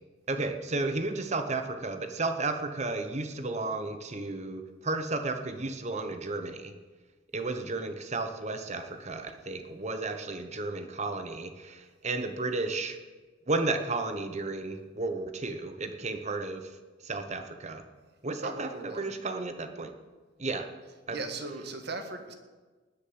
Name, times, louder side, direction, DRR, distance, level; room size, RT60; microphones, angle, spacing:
voice 1, 0.3-6.7 7.3-13.0 13.5-16.7 17.0-17.8 18.2-19.9 20.4-20.7 21.1-21.2, right 3 dB, 35° right, 7 dB, 1.0 m, -33 dB
voice 2, 18.4-19.1 21.1-22.3, right 2 dB, 55° right, 6 dB, 1.7 m, -38 dB
19.5 x 6.8 x 7.6 m, 1.3 s
head